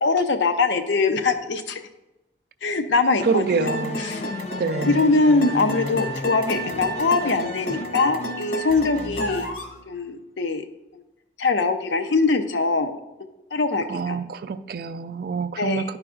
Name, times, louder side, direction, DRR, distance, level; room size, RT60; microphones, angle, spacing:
voice 1, 0.0-1.8 2.6-3.7 4.1-4.2 4.9-9.5 9.9-10.6 10.9-11.0 11.4-13.0 13.5-14.2 15.6-15.9, left 3 dB, 85° left, 7 dB, 0.6 m, -22 dB
sound 1, 3.2-9.9, left 2 dB, 35° left, 0.4 m, -34 dB
voice 2, 3.2-4.0 4.6-5.0 13.9-16.0, right 4 dB, 55° right, 12 dB, 0.3 m, -26 dB
sound 2, 3.7-9.7, right 1 dB, 50° left, 0.9 m, -31 dB
10.5 x 4.8 x 2.4 m, 0.98 s
head